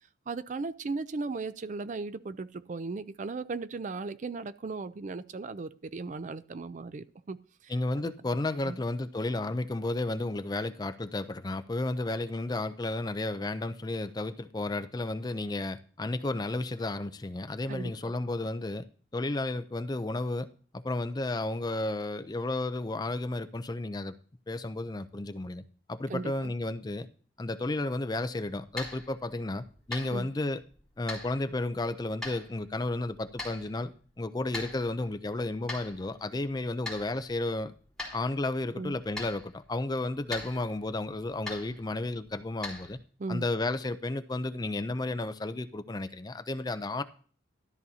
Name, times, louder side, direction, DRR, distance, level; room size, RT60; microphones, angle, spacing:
voice 1, 0.3-7.4 7.6-8.1 8.7-8.8 17.7-18.1 26.1-26.5 30.1-30.3 38.8-38.9 43.2-43.4, right 3 dB, 40° right, 0.4 m, -37 dB
voice 2, 7.7-18.9 19.1-20.5 20.7-24.2 24.5-25.6 25.9-27.1 27.4-30.6 31.0-37.7 38.1-43.0 43.3-47.0, left 2 dB, 20° left, 0.4 m, -32 dB
sound 1, 28.7-43.0, left 2 dB, 5° left, 3.8 m, -44 dB
13.0 x 12.0 x 2.8 m
head